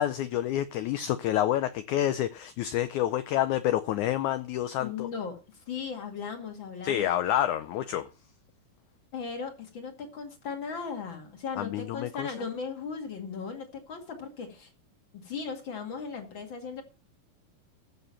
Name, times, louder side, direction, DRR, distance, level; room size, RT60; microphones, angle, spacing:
voice 1, 0.0-5.1 6.8-8.1 11.6-12.3, left 12 dB, 90° left, 1.7 m, -28 dB
voice 2, 4.8-5.4 5.7-7.1 9.1-14.7 15.2-16.8, left 5 dB, 35° left, 2.5 m, -37 dB
14.5 x 6.7 x 5.6 m
omnidirectional pair, 4.3 m